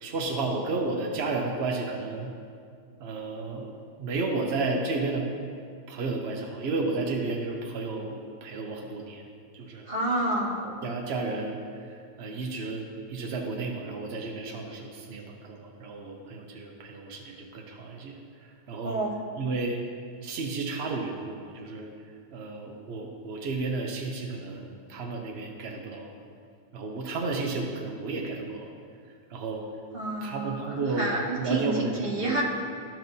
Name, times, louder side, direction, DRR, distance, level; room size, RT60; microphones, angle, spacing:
voice 1, 0.0-2.3 3.0-3.6 4.0-5.3 5.9-9.2 9.5-9.9 10.6-11.6 12.2-12.8 13.1-18.1 18.7-19.0 19.4-19.8 20.2-21.9 22.3-26.1 26.7-28.7 29.3-29.7 30.2-32.4, right 3 dB, 70° right, 1 dB, 0.6 m, -32 dB
voice 2, 9.9-10.6 18.8-19.1 29.9-31.7 32.0-32.4, right 2 dB, 30° right, -6 dB, 1.6 m, -29 dB
13.5 x 5.9 x 2.7 m, 2.3 s
omnidirectional pair, 2.0 m